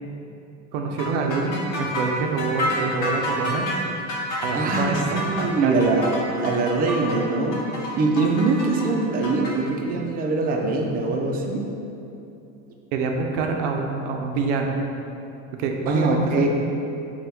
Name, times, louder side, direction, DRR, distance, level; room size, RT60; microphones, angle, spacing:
voice 1, 0.7-3.7 4.4-5.9 12.9-14.8 15.6-16.5, right 4 dB, 85° right, 2 dB, 0.5 m, -26 dB
sound 1, 1.0-9.5, left 1 dB, 60° left, 0.9 m, -29 dB
voice 2, 4.5-6.1 6.4-7.6 7.9-11.7 15.9-16.5, right 3 dB, 25° right, 1 dB, 0.4 m, -23 dB
3.4 x 2.3 x 4.3 m, 2.7 s
supercardioid pair, 100°, 35 cm